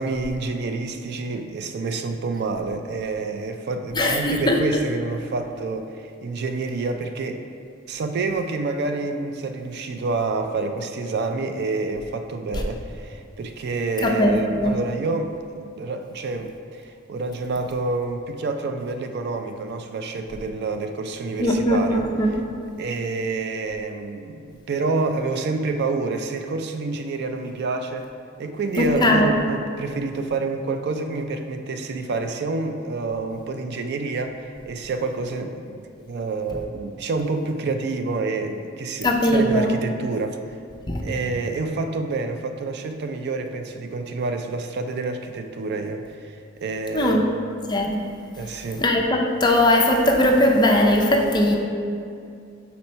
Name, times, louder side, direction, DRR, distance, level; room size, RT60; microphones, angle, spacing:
voice 1, 0.0-7.4 7.9-15.3 15.6-22.4 22.8-28.1 28.4-40.4 41.0-46.3 46.6-47.2 48.4-48.8, right 3 dB, 55° right, 7 dB, 0.4 m, -28 dB
voice 2, 3.9-4.6 14.0-14.4 14.6-14.8 21.4-22.4 28.8-29.4 39.0-39.7 40.9-41.0 46.9-47.2 47.7-48.0 48.8-51.6, left 1 dB, 20° left, 1 dB, 0.5 m, -19 dB
4.3 x 4.2 x 5.4 m, 2.4 s
head